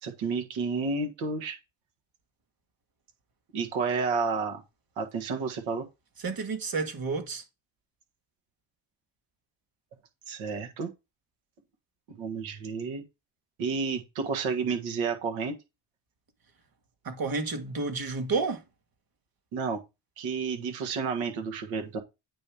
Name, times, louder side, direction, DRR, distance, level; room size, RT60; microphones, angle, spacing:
voice 1, 0.0-1.6 3.5-4.6 5.0-5.8 10.3-10.9 12.1-13.0 13.6-15.5 19.5-19.8 20.2-22.0, right 4 dB, 90° right, 1.6 m, -31 dB
voice 2, 6.2-7.4 17.0-18.6, right 4 dB, 50° right, 1.9 m, -30 dB
8.7 x 2.9 x 4.9 m
supercardioid pair, 60°, 45 cm